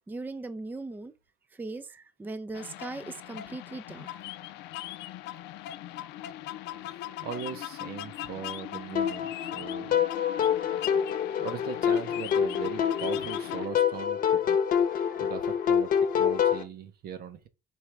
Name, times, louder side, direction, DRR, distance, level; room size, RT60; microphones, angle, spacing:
voice 1, 0.1-1.1 1.5-4.2 9.9-10.0 10.6-10.8 14.9-15.2, right 3 dB, 10° right, 0.4 m, -39 dB
sound 1, 2.5-13.7, left 13 dB, 85° left, 0.5 m, -40 dB
voice 2, 7.2-9.9 11.4-14.6 15.2-15.9 16.2-17.5, right 7 dB, 65° right, 0.9 m, -39 dB
sound 2, 9.0-16.6, left 8 dB, 55° left, 0.8 m, -26 dB
4.6 x 3.5 x 3.2 m
cardioid pair, 110°, 17 cm